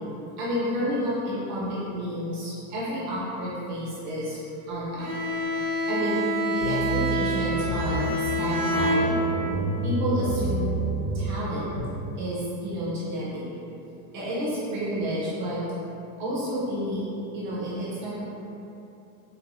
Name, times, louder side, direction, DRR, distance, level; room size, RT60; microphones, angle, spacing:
voice 1, 0.4-4.4 4.7-5.1 5.9-6.2 6.5-8.1 8.4-9.2 9.8-10.8 11.1-11.7 12.2-13.4 14.1-15.6 16.2-18.3, equal, 35° right, -7 dB, 0.4 m, -30 dB
Bowed string instrument, 5.0-9.6, equal, 80° right, 1.0 m, -27 dB
sound 1, 6.6-11.8, right 2 dB, 35° left, 0.5 m, -29 dB
4.8 x 2.1 x 2.4 m, 2.8 s
supercardioid pair, 175°, 45 cm